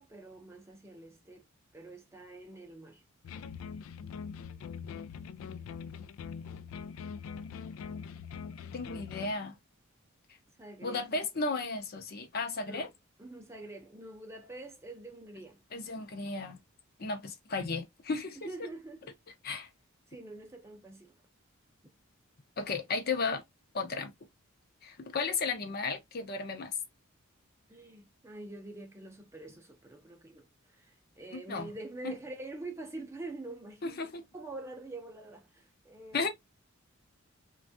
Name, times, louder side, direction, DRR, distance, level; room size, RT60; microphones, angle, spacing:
voice 1, 0.0-1.4 1.7-3.0 10.6-11.0 12.7-12.9 13.2-15.6 18.4-19.1 20.1-21.1 27.7-36.3, right 2 dB, 15° right, 0.5 m, -46 dB
sound 1, 3.2-9.3, left 6 dB, 80° left, 0.3 m, -43 dB
voice 2, 8.7-9.6 10.8-12.9 15.7-16.6 17.0-18.4 19.4-19.7 22.6-23.4 23.7-24.1 24.8-26.7 31.5-31.7 33.8-34.2 36.1-36.3, left 4 dB, 50° left, 0.6 m, -34 dB
3.2 x 2.3 x 2.5 m
head